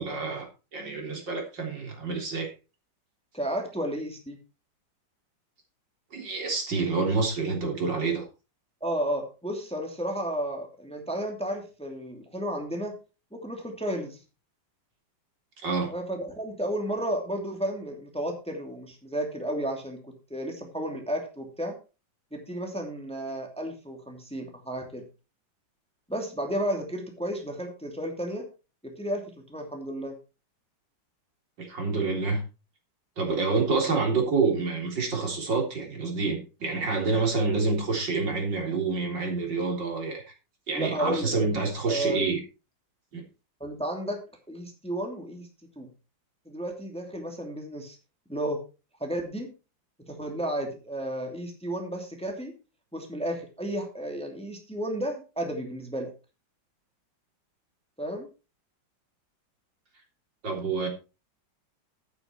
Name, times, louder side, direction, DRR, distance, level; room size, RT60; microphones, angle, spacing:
voice 1, 0.0-2.5 6.1-8.3 15.6-15.9 31.6-32.4 33.2-40.2 40.7-42.4 43.1-43.2 60.4-60.9, right 4 dB, 65° right, 4.3 m, -27 dB
voice 2, 3.3-4.4 8.8-13.0 13.3-14.2 15.9-21.8 22.3-25.0 26.1-28.5 28.8-30.2 40.7-41.3 41.9-42.3 43.6-44.2 44.5-45.5 45.8-45.9 46.5-48.0 48.3-48.6 49.0-49.5 50.0-52.5 52.9-56.1 58.0-58.3, right 1 dB, 5° left, 2.6 m, -32 dB
12.0 x 9.1 x 4.5 m
omnidirectional pair, 2.1 m